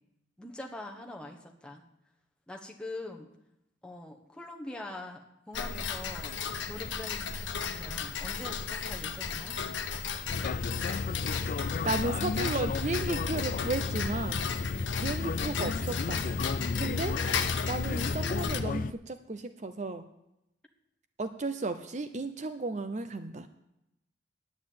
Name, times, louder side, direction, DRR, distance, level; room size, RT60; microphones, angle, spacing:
voice 1, 0.4-1.8 2.5-3.3 3.8-5.2 5.5-6.4 6.7-9.6, left 1 dB, 5° left, 1 dB, 1.3 m, -43 dB
Tick-tock, 5.5-18.6, left 6 dB, 80° left, 0.9 m, -35 dB
sound 1, 10.3-18.9, left 4 dB, 45° left, 0.4 m, -33 dB
voice 2, 11.4-14.5 14.9-16.2 16.7-17.2 17.7-20.1 21.2-23.5, right 3 dB, 40° right, 10 dB, 0.6 m, -34 dB
9.7 x 9.4 x 8.5 m, 0.85 s
head